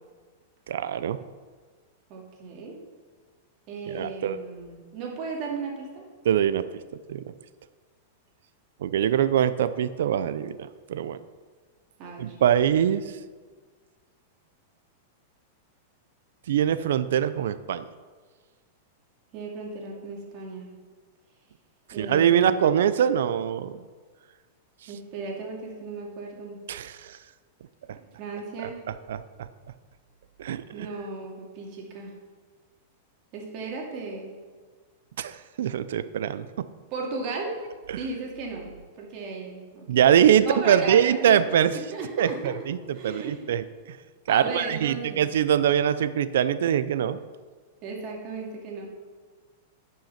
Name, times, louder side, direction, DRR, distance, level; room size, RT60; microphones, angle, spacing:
voice 1, 0.7-1.2 3.9-4.4 6.2-6.7 7.1-7.2 8.8-11.2 12.2-13.0 16.5-17.8 21.9-23.8 26.7-27.2 28.6-29.2 30.4-30.9 35.2-36.7 37.5-37.6 37.9-38.0 39.9-41.8 42.2-44.0 44.3-47.2, right 9 dB, 75° right, 13 dB, 0.5 m, -23 dB
voice 2, 2.1-2.8 3.7-6.0 12.0-12.3 19.3-20.7 21.9-22.5 24.9-26.6 28.2-28.8 30.7-32.1 33.3-34.3 36.9-37.6 38.0-39.9 40.4-41.4 41.7-42.5 42.9-43.4 44.3-45.2 47.8-48.9, right 4 dB, 45° right, -1 dB, 2.4 m, -35 dB
10.5 x 5.6 x 5.8 m, 1.5 s
hypercardioid pair, 135°, 0 cm